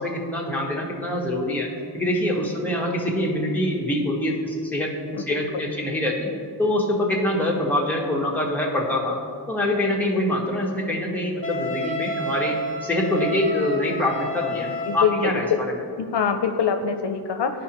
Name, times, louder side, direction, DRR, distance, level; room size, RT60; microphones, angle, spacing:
voice 1, 0.0-4.9 5.3-6.3 6.6-9.2 9.5-15.7, left 1 dB, 5° left, -3 dB, 1.3 m, -25 dB
voice 2, 5.1-5.7 14.9-15.3 16.1-17.5, left 6 dB, 80° left, 6 dB, 0.6 m, -24 dB
Wind instrument woodwind instrument, 11.4-15.3, equal, 30° left, 1.3 m, -30 dB
12.5 x 5.0 x 2.9 m, 2.2 s
wide cardioid pair, 85°, 41 cm